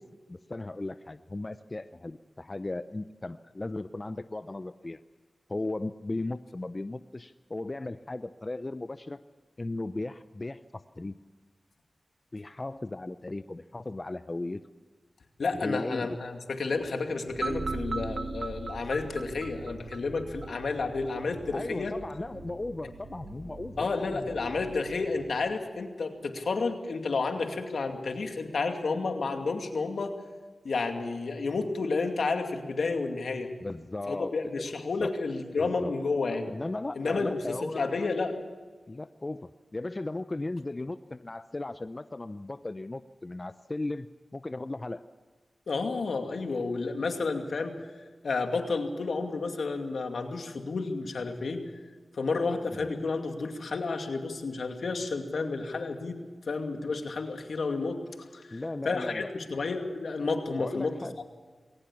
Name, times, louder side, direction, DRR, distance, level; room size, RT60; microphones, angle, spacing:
voice 1, 0.3-5.0 5.5-9.2 9.6-11.2 12.3-14.6 15.6-16.2 21.5-24.4 25.0-25.1 33.6-34.7 35.0-35.1 35.6-35.9 36.5-37.9 38.9-44.1 44.3-45.0 52.8-52.9 58.5-59.3 60.6-61.2, left 2 dB, 35° left, 12 dB, 0.6 m, -36 dB
voice 2, 15.4-21.9 23.8-30.1 30.6-33.5 34.1-36.5 37.0-37.4 37.7-38.4 45.7-47.8 48.2-51.6 52.1-56.2 56.5-58.0 58.3-60.9, left 3 dB, 80° left, 4 dB, 2.5 m, -31 dB
sound 1, 17.3-25.6, right 2 dB, 85° right, 4.5 m, -48 dB
sound 2, 17.4-20.5, right 3 dB, 55° right, 1.1 m, -36 dB
21.5 x 18.0 x 7.2 m, 1.4 s
cardioid pair, 50°, 0 cm